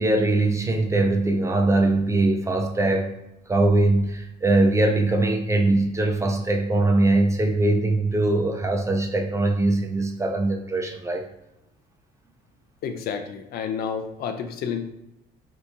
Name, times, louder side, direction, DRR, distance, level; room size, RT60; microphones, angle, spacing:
voice 1, 0.0-3.1 3.5-11.3, right 2 dB, 15° right, 2 dB, 0.5 m, -21 dB
voice 2, 12.8-14.8, left 7 dB, 65° left, 7 dB, 0.5 m, -30 dB
2.8 x 2.6 x 3.4 m, 0.87 s
cardioid pair, 110°, 17 cm